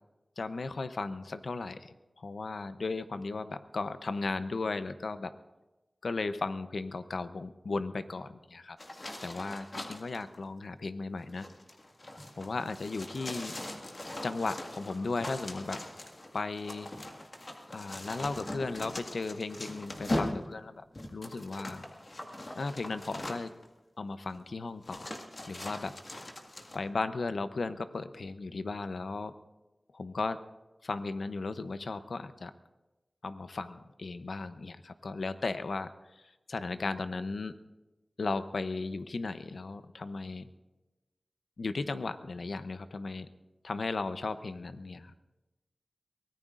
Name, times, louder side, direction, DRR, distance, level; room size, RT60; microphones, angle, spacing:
voice 1, 0.4-5.3 6.0-8.8 9.2-11.5 12.4-13.5 14.2-15.8 16.3-16.9 17.7-20.8 21.1-21.8 22.6-23.5 24.0-25.1 25.5-25.9 26.7-29.3 29.9-30.4 30.8-32.5 33.2-37.5 38.2-40.4 41.6-43.3 43.6-45.1, left 3 dB, 90° left, 11 dB, 0.7 m, -36 dB
sound 1, 8.8-10.2 11.2-23.7 24.3-24.4 24.8-26.8, left 1 dB, 50° left, 1.8 m, -40 dB
23.5 x 18.0 x 2.5 m, 1.1 s
wide cardioid pair, 45°, 0 cm